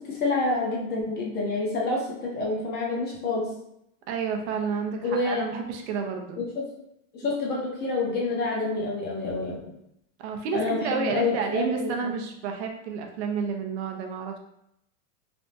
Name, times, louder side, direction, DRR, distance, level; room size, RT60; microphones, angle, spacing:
voice 1, 0.1-3.5 5.0-5.4 6.5-6.6 7.1-9.6 10.5-12.1, left 3 dB, 25° left, -2 dB, 0.6 m, -28 dB
voice 2, 4.1-6.4 10.2-14.4, right 5 dB, 55° right, 3 dB, 0.5 m, -30 dB
3.3 x 2.0 x 2.6 m, 0.77 s
supercardioid pair, 140°, 40 cm